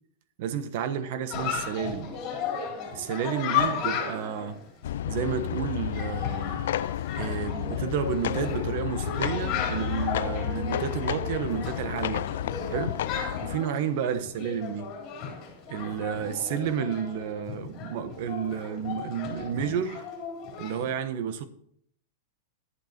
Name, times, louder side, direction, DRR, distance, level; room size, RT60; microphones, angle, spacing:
voice 1, 0.4-2.1 2.9-4.6 5.1-6.6 7.1-12.3 12.7-13.0 13.4-14.9 15.7-20.0 20.6-21.5, right 8 dB, 45° right, 1.1 m, -31 dB
Chatter, 1.3-20.9, left 6 dB, 30° left, 3.2 m, -35 dB
sound 1, 4.8-13.6, left 12 dB, 70° left, 0.3 m, -31 dB
11.0 x 8.8 x 4.4 m
supercardioid pair, 170°, 0 cm